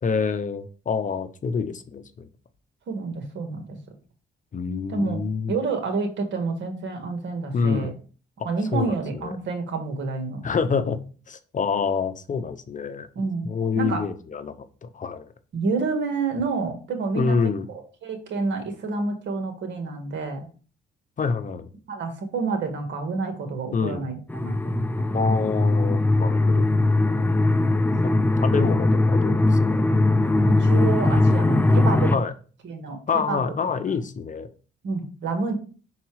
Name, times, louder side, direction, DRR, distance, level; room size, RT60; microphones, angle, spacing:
voice 1, 0.0-2.3 4.5-5.5 7.5-8.0 8.7-9.3 10.4-11.0 11.3-13.1 13.4-15.3 17.1-17.7 21.2-21.7 23.7-24.1 25.1-26.7 28.0-29.8 32.1-32.3 33.1-34.5, left 5 dB, 40° left, 10 dB, 0.7 m, -27 dB
voice 2, 2.9-3.8 4.9-5.2 5.5-7.9 8.4-10.4 13.1-14.0 15.5-17.4 17.7-20.5 21.9-25.2 27.5-27.9 30.4-32.1 32.6-33.0 33.3-33.4 34.8-35.5, right 4 dB, 65° right, 5 dB, 1.7 m, -29 dB
sound 1, 24.3-32.2, left 2 dB, 10° left, 0.4 m, -20 dB
5.8 x 4.0 x 4.7 m, 0.38 s
cardioid pair, 90°, 20 cm